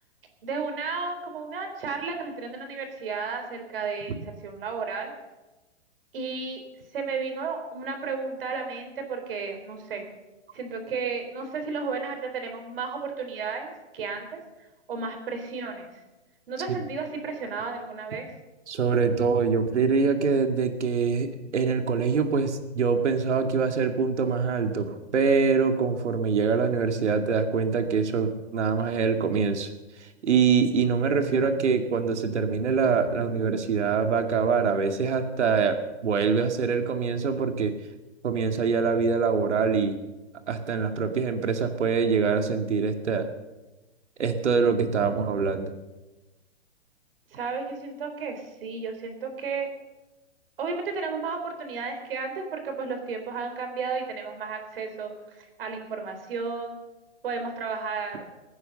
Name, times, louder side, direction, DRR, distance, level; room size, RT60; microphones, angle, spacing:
voice 1, 0.4-5.1 6.1-6.6 6.9-10.0 10.5-14.4 14.9-15.9 16.5-18.3 47.3-49.7 50.6-56.8 57.2-58.3, right 4 dB, 50° right, 5 dB, 4.0 m, -33 dB
voice 2, 18.7-29.7 30.0-37.7 38.2-40.0 40.5-43.3 44.2-45.7, right 5 dB, 80° right, 6 dB, 2.3 m, -24 dB
22.0 x 9.7 x 6.6 m, 1.1 s
hypercardioid pair, 170°, 35 cm